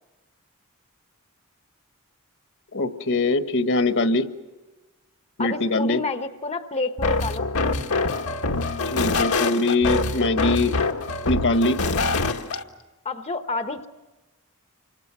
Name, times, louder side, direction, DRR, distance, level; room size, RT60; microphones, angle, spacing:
voice 1, 2.7-4.3 5.4-6.0 8.8-10.8 11.3-11.8, left 2 dB, 60° left, 8 dB, 1.5 m, -22 dB
voice 2, 5.4-7.5 13.0-13.9, left 3 dB, 30° left, 7 dB, 1.1 m, -29 dB
sound 1, 7.0-12.6, left 3 dB, 80° left, 1.8 m, -24 dB
29.0 x 25.5 x 6.2 m, 1.1 s
head